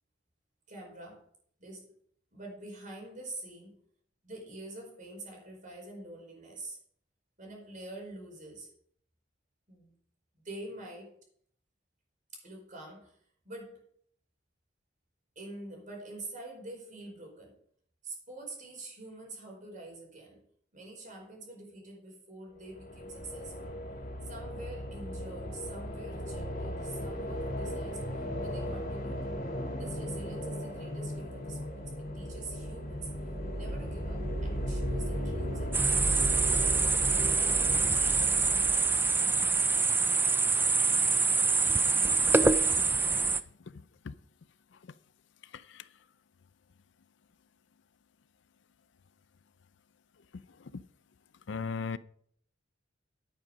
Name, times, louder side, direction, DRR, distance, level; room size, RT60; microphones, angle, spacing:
voice 1, 0.7-1.2 1.6-1.9 2.3-3.8 4.2-6.8 7.4-8.7 9.7-9.9 10.3-11.1 12.3-13.2 13.4-13.8 15.3-17.6 18.0-20.4 20.7-23.8 24.2-29.2 29.7-31.8 32.1-33.1 33.5-36.4 36.8-37.0 37.3-38.8, right 2 dB, 45° right, 4.8 m, -46 dB
sound 1, 22.6-39.6, equal, 50° left, 2.4 m, -36 dB
sound 2, 35.7-43.4, right 4 dB, 10° right, 0.4 m, -25 dB
voice 2, 43.7-44.2 44.7-44.9 45.4-45.9 50.3-50.8 51.5-52.0, left 5 dB, 70° left, 0.5 m, -39 dB
10.0 x 9.1 x 5.2 m
head